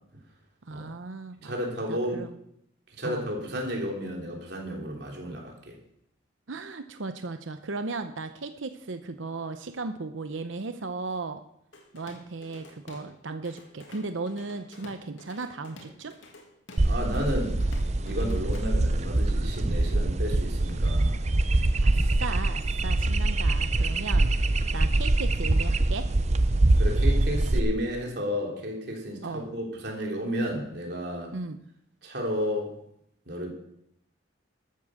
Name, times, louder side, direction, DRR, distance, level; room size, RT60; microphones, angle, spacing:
voice 1, 0.7-1.6 1.9-2.3 3.0-3.3 6.5-11.4 11.9-16.1 21.8-24.3 24.7-26.1 29.2-29.5 31.3-31.6, right 3 dB, 85° right, 9 dB, 0.8 m, -36 dB
voice 2, 1.4-2.2 3.0-5.8 16.8-17.6 18.0-21.2 26.8-31.3 32.0-32.7 33.3-33.5, equal, 60° right, 0 dB, 3.5 m, -32 dB
Drum kit / Drum, 11.7-13.1 13.4-19.1, left 2 dB, 75° left, 2.4 m, -50 dB
sound 1, 16.8-27.6, right 2 dB, 35° right, 0.6 m, -24 dB
13.5 x 8.4 x 6.5 m, 0.74 s
head